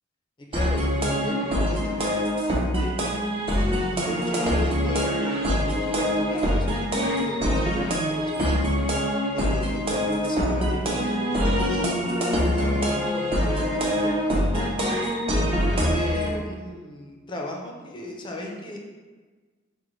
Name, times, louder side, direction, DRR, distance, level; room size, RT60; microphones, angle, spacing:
voice 1, 0.4-2.3 2.6-3.1 3.9-6.7 7.0-8.6 9.3-15.1 15.7-18.8, equal, 25° left, -1 dB, 0.5 m, -36 dB
sound 1, 0.5-16.3, equal, 25° right, 0.6 m, -24 dB
4.8 x 2.1 x 3.0 m, 1.4 s
head